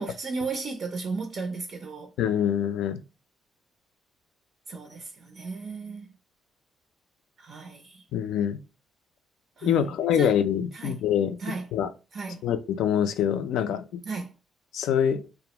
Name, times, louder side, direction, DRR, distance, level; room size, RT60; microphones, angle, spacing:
voice 1, 0.0-2.1 4.7-6.1 7.4-8.0 9.6-9.7 10.1-10.4 10.7-11.0 11.4-11.7 12.1-12.4 14.1-14.3, right 4 dB, 55° right, 0.4 m, -34 dB
voice 2, 2.2-3.0 8.1-8.6 9.6-11.4 11.7-11.9 12.4-14.0 14.7-15.3, left 9 dB, 80° left, 0.3 m, -25 dB
2.3 x 2.0 x 2.9 m
cardioid pair, 90°, 0 cm